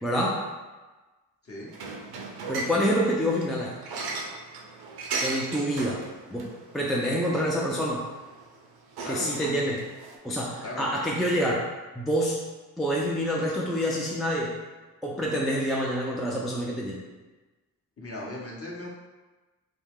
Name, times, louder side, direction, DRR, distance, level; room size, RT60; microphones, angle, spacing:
voice 1, 0.0-0.4 2.5-3.8 5.2-6.0 6.3-8.1 9.1-9.9 10.2-11.7 12.0-12.5 12.8-14.6 15.0-17.0, equal, ahead, -4 dB, 0.3 m, -27 dB
sound 1, 1.7-10.2, right 3 dB, 60° right, 0.6 m, -37 dB
voice 2, 9.0-9.4 10.6-11.0 18.0-18.9, left 1 dB, 30° left, -3 dB, 0.9 m, -37 dB
2.3 x 2.2 x 3.4 m, 1.2 s
hypercardioid pair, 40°, 44 cm